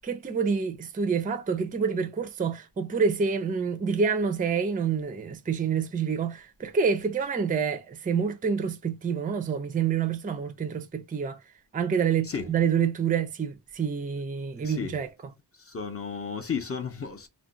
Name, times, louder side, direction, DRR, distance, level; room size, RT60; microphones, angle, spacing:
voice 1, 0.1-11.4 11.7-15.1, right 6 dB, 20° right, 0.3 m, -27 dB
voice 2, 14.6-15.0 15.7-17.3, left 6 dB, 35° left, 0.5 m, -33 dB
2.4 x 2.2 x 3.7 m
wide cardioid pair, 140°, 42 cm